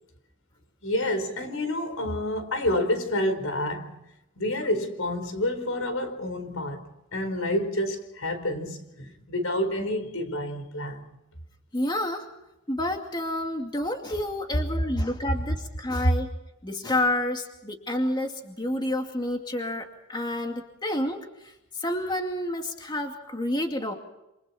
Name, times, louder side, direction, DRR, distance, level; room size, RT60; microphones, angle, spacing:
voice 1, 0.8-3.9 4.4-6.8 7.1-11.0 16.0-16.1, left 1 dB, 75° left, 4.5 m, -28 dB
voice 2, 11.7-12.3 12.7-16.3 16.6-21.2 21.8-23.9, left 1 dB, 20° left, 2.4 m, -29 dB
28.5 x 28.0 x 4.4 m
head